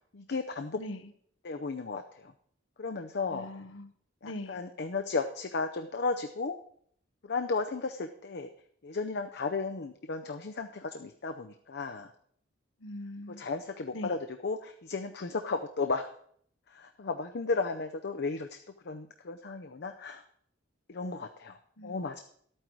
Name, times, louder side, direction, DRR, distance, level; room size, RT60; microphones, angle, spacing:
voice 1, 0.1-0.8 1.4-2.3 2.8-3.5 4.2-6.5 7.2-8.5 8.8-12.1 13.4-16.1 16.7-18.6 18.8-20.2 20.9-22.2, left 4 dB, 60° left, 6 dB, 0.6 m, -34 dB
voice 2, 0.8-1.1 3.3-3.9 4.2-4.6 12.8-13.4 13.9-14.1 21.8-22.0, left 1 dB, 85° left, 9 dB, 1.0 m, -41 dB
11.5 x 8.8 x 4.6 m, 0.63 s
head